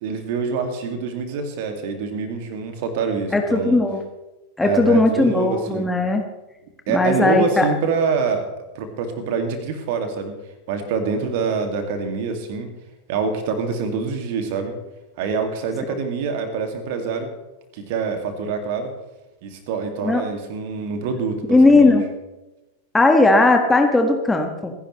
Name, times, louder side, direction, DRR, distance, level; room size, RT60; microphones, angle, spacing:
voice 1, 0.0-3.8 4.6-5.9 6.9-8.4 8.7-10.3 10.7-12.7 13.1-14.7 15.2-17.3 17.7-18.9 19.4-22.0, right 5 dB, 50° right, 6 dB, 2.3 m, -25 dB
voice 2, 3.3-4.0 4.6-6.2 6.9-7.7 20.0-20.2 21.5-22.0 22.9-24.7, left 2 dB, 10° left, 3 dB, 1.7 m, -17 dB
27.0 x 10.5 x 3.3 m, 1.0 s
figure-of-eight pair, 90°, 0 cm